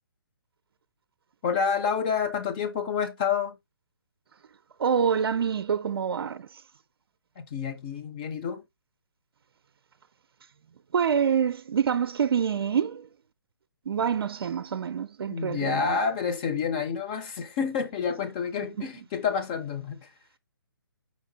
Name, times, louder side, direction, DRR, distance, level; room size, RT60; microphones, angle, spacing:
voice 1, 1.4-3.6 7.4-8.6 15.3-20.1, left 6 dB, 20° left, 0.5 m, -29 dB
voice 2, 4.8-6.6 10.9-13.1 13.9-15.8 18.8-18.9, right 7 dB, 75° right, 0.4 m, -26 dB
4.9 x 2.6 x 3.8 m
hypercardioid pair, 160°, 13 cm